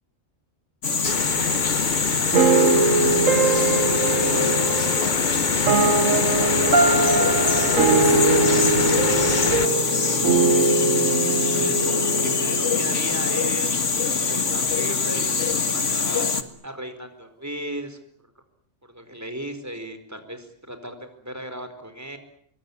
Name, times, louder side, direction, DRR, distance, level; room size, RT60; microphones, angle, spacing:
sound 1, 0.8-16.4, left 5 dB, 70° left, 2.2 m, -24 dB
sound 2, 1.0-9.7, left 4 dB, 40° left, 1.4 m, -28 dB
voice 1, 1.1-1.4 3.8-5.1 5.4-5.7 7.0-10.2 11.5-15.3 15.7-16.3 16.6-18.0 18.8-22.2, equal, 10° right, 8 dB, 4.6 m, -36 dB
sound 3, 2.3-13.4, right 3 dB, 90° right, 1.8 m, -22 dB
26.0 x 22.5 x 9.8 m, 0.65 s
omnidirectional pair, 1.3 m